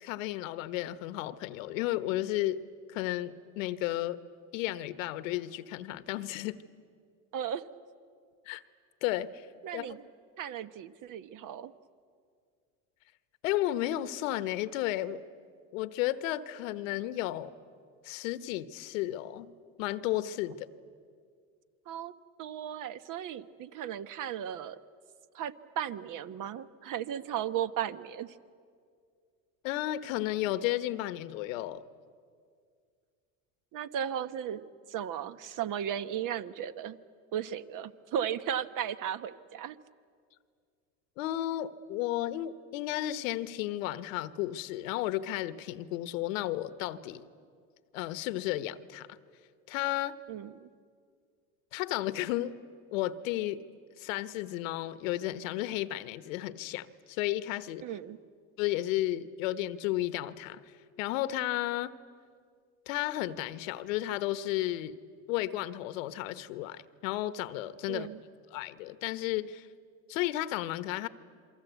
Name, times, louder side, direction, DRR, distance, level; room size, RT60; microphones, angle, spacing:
voice 1, 0.0-2.6 2.9-4.2 4.5-6.6 8.5-8.6 9.0-9.5 9.7-10.0 13.4-15.2 15.7-17.5 18.0-19.5 19.8-20.7 29.6-31.8 41.2-47.3 47.9-49.1 49.7-50.2 51.7-52.5 52.9-53.6 54.0-57.8 58.6-60.6 61.0-61.9 62.9-65.0 65.3-68.1 68.5-69.7 70.1-71.1, left 14 dB, 85° left, 1.1 m, -33 dB
voice 2, 7.3-7.7 9.6-10.0 10.4-11.7 21.9-22.1 22.4-24.8 25.3-28.4 33.7-37.0 37.3-39.8 50.3-50.7 57.8-58.2 67.9-68.2, right 9 dB, 55° right, 1.1 m, -36 dB
28.0 x 23.5 x 8.2 m
supercardioid pair, 95°, 39 cm